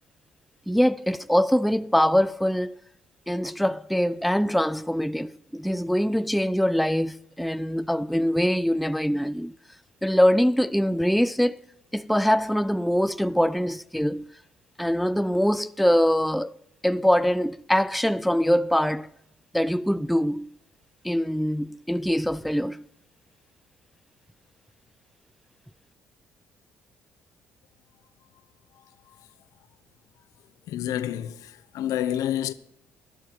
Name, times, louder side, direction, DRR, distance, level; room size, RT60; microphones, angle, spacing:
voice 1, 0.7-2.8 3.3-9.5 10.0-11.5 11.9-14.3 14.8-16.5 16.8-19.1 19.5-20.6 21.0-22.8, equal, ahead, 0.3 m, -23 dB
voice 2, 30.7-32.5, left 11 dB, 75° left, 0.7 m, -28 dB
12.5 x 11.0 x 4.4 m
supercardioid pair, 60°, 6 cm